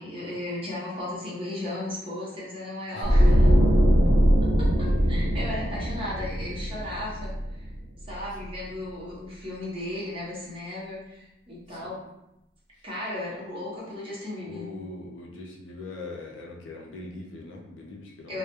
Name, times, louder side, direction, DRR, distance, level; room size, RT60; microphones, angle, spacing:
voice 1, 0.0-3.3 4.6-7.7 8.1-12.0 12.8-14.6 18.3-18.4, left 1 dB, 30° right, -7 dB, 0.8 m, -35 dB
voice 2, 2.9-3.4 11.7-12.0 12.8-12.9 14.4-18.4, left 2 dB, 75° left, 0 dB, 0.5 m, -41 dB
sound 1, 3.0-8.1 8.4-8.6, equal, 85° right, 0.5 m, -21 dB
2.2 x 2.1 x 2.9 m, 0.89 s
head